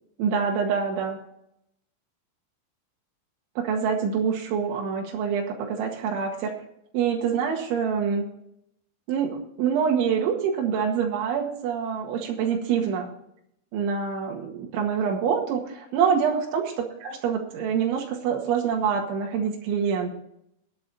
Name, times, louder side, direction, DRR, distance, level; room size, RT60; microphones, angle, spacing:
voice 1, 0.2-1.2 3.6-6.5 6.9-8.3 9.1-13.1 13.7-20.1, right 7 dB, 80° right, 0 dB, 4.1 m, -26 dB
21.0 x 7.2 x 4.1 m, 0.75 s
omnidirectional pair, 5.5 m